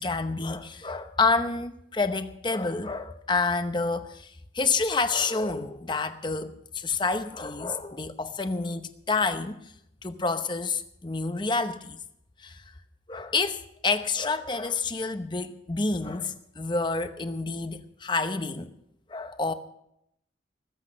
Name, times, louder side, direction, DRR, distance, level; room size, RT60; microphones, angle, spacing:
voice 1, 0.0-9.6 10.0-12.0 12.4-12.6 13.1-18.7 19.1-19.5, left 3 dB, 25° left, 0.8 m, -28 dB
19.5 x 8.2 x 6.5 m
head